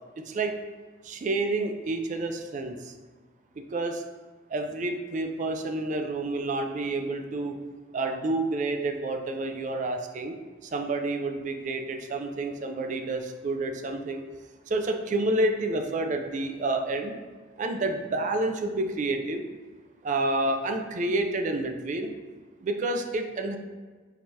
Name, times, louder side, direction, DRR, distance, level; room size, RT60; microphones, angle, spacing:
voice 1, 1.0-2.9 3.7-4.0 4.5-7.6 7.9-10.3 10.7-14.2 14.7-17.1 17.6-19.5 20.0-22.1 22.6-23.6, right 2 dB, 40° right, 5 dB, 0.4 m, -29 dB
4.7 x 2.8 x 3.3 m, 1.4 s
head